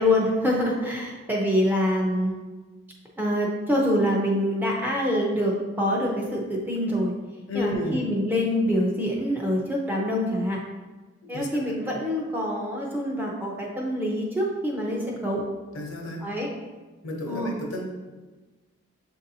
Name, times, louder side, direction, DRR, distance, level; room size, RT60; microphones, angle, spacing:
voice 1, 0.0-2.3 3.2-7.1 7.5-10.6 11.3-15.4 16.2-16.5 17.3-17.5, left 1 dB, 10° right, -2 dB, 0.6 m, -25 dB
voice 2, 7.5-8.0 11.2-11.6 15.7-16.3 17.0-17.8, left 1 dB, 75° left, 1 dB, 0.8 m, -31 dB
7.2 x 2.7 x 2.7 m, 1.3 s
head